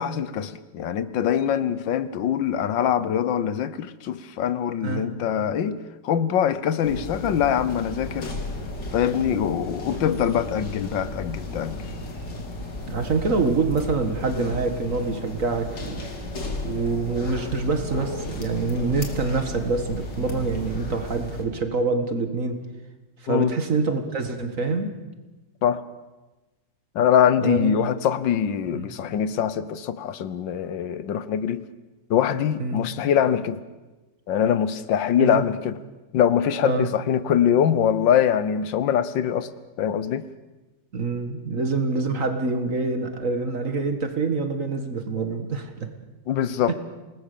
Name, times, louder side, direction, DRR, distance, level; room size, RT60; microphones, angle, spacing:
voice 1, 0.0-8.3 8.9-11.8 23.3-23.5 25.6-25.8 26.9-31.6 32.1-33.6 34.3-35.8 36.1-39.5 39.8-40.3 46.3-46.7, left 9 dB, 90° left, 1.7 m, -23 dB
sound 1, 6.8-21.4, left 2 dB, 70° left, 3.3 m, -34 dB
voice 2, 12.9-16.1 16.6-22.6 23.2-24.9 27.4-27.8 28.7-28.9 32.6-32.8 35.2-35.5 36.6-36.9 40.9-45.9 46.7-46.8, right 3 dB, 45° right, 2.1 m, -26 dB
28.5 x 19.0 x 6.9 m
omnidirectional pair, 1.9 m